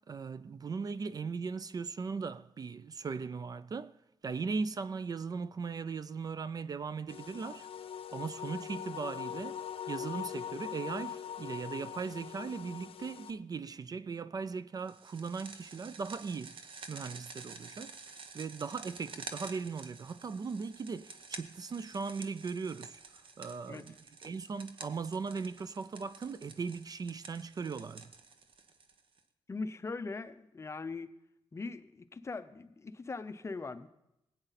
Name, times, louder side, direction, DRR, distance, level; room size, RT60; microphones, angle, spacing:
voice 1, 0.1-4.0 4.2-7.7 8.1-9.6 9.9-18.0 18.3-23.0 23.4-24.0 24.2-28.1, right 5 dB, 40° right, 0.4 m, -38 dB
sound 1, 7.1-13.3, left 9 dB, 65° left, 0.7 m, -42 dB
sound 2, 14.9-29.2, right 4 dB, 60° right, 1.0 m, -50 dB
voice 2, 29.5-31.1 31.5-33.9, left 3 dB, 30° left, 0.6 m, -40 dB
19.5 x 8.9 x 4.1 m
wide cardioid pair, 125°, 10 cm